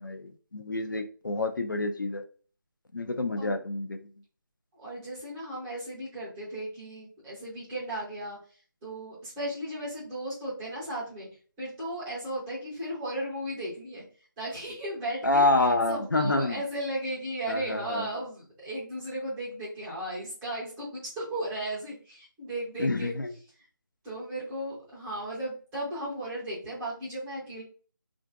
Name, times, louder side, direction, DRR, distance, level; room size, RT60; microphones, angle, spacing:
voice 1, 0.0-2.2 2.9-4.0 15.2-16.6 17.5-18.1 22.8-23.3, left 2 dB, 65° left, 7 dB, 0.4 m, -27 dB
voice 2, 4.7-8.4 8.8-11.3 11.6-14.0 14.4-15.5 15.9-23.1 24.0-27.6, right 1 dB, 5° right, -8 dB, 0.4 m, -35 dB
3.6 x 2.5 x 2.3 m, 0.40 s
figure-of-eight pair, 160°, 11 cm